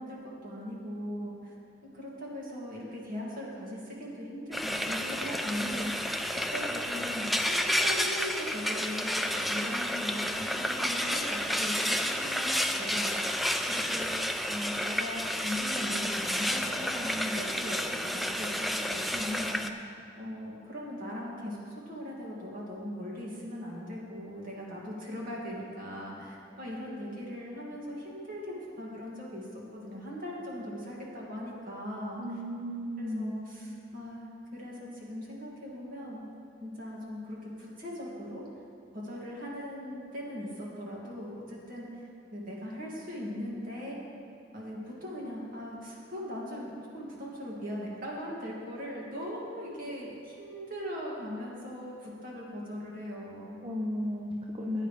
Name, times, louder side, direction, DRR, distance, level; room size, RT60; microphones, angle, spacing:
voice 1, 0.0-1.5 1.9-6.1 6.5-19.8 20.2-32.2 33.0-36.2 36.6-38.5 38.9-44.0 44.5-53.6, equal, 50° right, -4 dB, 2.3 m, -39 dB
Frying (food), 4.5-19.7, equal, ahead, 0.4 m, -31 dB
voice 2, 32.2-33.3 53.6-54.9, left 1 dB, 30° right, -2 dB, 0.8 m, -34 dB
14.5 x 9.7 x 3.3 m, 2.5 s
head